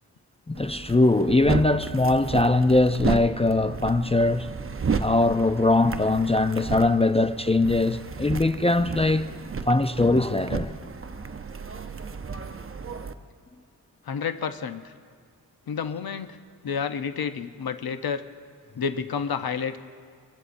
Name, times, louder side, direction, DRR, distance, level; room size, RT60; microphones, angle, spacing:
voice 1, 0.5-4.5 5.0-9.3 9.7-10.7, left 2 dB, 15° left, 0.4 m, -21 dB
sound 1, 0.5-13.1, right 5 dB, 30° right, 0.7 m, -33 dB
voice 2, 14.1-14.9 15.7-16.4 16.6-18.2 18.8-19.8, left 6 dB, 60° left, 0.7 m, -30 dB
23.0 x 15.0 x 2.6 m
wide cardioid pair, 90°, 41 cm